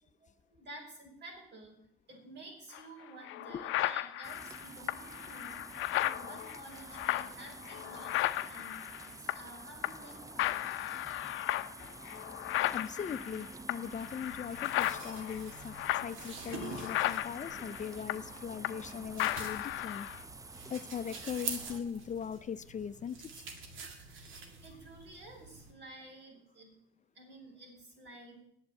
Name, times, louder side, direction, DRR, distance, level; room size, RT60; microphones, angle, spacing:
voice 1, 0.0-1.8 2.1-5.6 5.9-10.6 14.4-14.5 20.4-20.5 24.2-26.8 27.1-28.4, right 2 dB, 60° right, 1 dB, 4.6 m, -52 dB
sound 1, 2.7-2.8 3.2-9.6 9.8-10.1 10.4-18.9 19.2-20.2, left 16 dB, 90° left, 0.5 m, -35 dB
sound 2, 4.2-21.8, right 3 dB, 15° right, 0.5 m, -49 dB
voice 2, 12.7-20.1 20.7-23.2, left 7 dB, 40° left, 13 dB, 0.5 m, -40 dB
sound 3, 13.9-25.7, right 4 dB, 80° right, 2.0 m, -47 dB
8.7 x 8.2 x 8.5 m, 0.77 s
cardioid pair, 90°, 20 cm